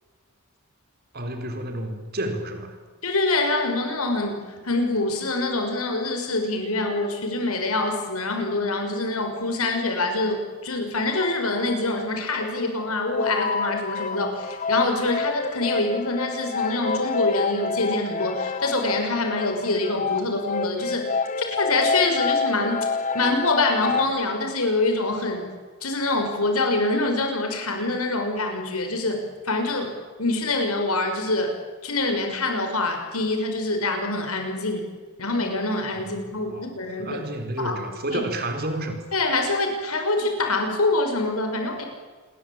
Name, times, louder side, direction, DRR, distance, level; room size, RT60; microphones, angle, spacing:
voice 1, 1.1-2.7 36.5-39.0, right 1 dB, 45° right, 6 dB, 4.5 m, -30 dB
voice 2, 3.0-4.4 4.6-21.1 21.4-22.9 23.1-25.5 25.8-29.9 30.2-31.6 31.8-34.8 35.2-37.2 37.6-37.8 38.1-38.2 39.1-41.8, left 2 dB, 75° left, 4 dB, 6.2 m, -25 dB
sound 1, 11.0-12.6 12.8-24.0, left 5 dB, 35° left, 1.4 m, -28 dB
28.0 x 22.5 x 8.9 m, 1.4 s
head